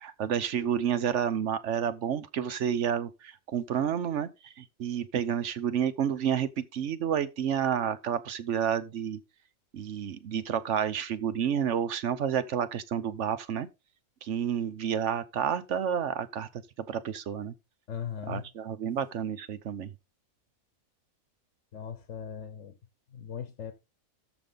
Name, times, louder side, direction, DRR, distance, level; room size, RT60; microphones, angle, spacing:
voice 1, 0.0-9.2 9.7-13.7 14.2-17.5 18.3-19.9, right 8 dB, 65° right, 1.0 m, -30 dB
voice 2, 17.9-18.5 21.7-22.7 23.1-23.7, left 8 dB, 65° left, 1.2 m, -38 dB
13.5 x 5.3 x 3.8 m
omnidirectional pair, 1.5 m